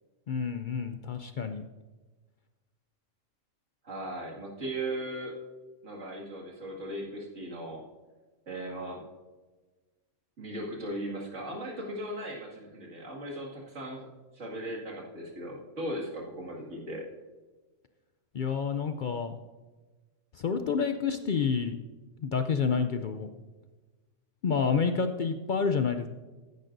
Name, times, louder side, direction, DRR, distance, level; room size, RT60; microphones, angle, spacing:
voice 1, 0.3-1.6 18.3-19.4 20.3-21.8 22.2-23.3 24.4-26.1, left 6 dB, 70° left, 8 dB, 0.4 m, -29 dB
voice 2, 3.8-5.4 5.8-7.8 8.5-9.0 10.4-14.1 14.3-17.0, right 1 dB, 60° right, -3 dB, 2.5 m, -37 dB
15.0 x 10.5 x 2.6 m, 1.3 s
omnidirectional pair, 1.4 m